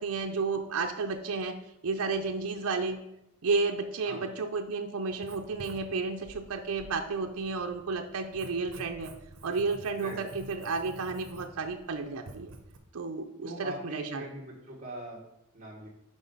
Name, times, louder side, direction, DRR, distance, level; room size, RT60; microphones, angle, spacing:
voice 1, 0.0-1.6 1.8-3.0 3.4-9.1 9.4-12.5 12.9-14.2, right 4 dB, 80° right, 4 dB, 0.6 m, -32 dB
Writing, 5.1-12.8, right 2 dB, 65° right, 1.0 m, -50 dB
voice 2, 13.4-15.2 15.5-15.9, right 1 dB, 35° right, -5 dB, 1.4 m, -41 dB
6.2 x 5.2 x 5.4 m, 0.85 s
head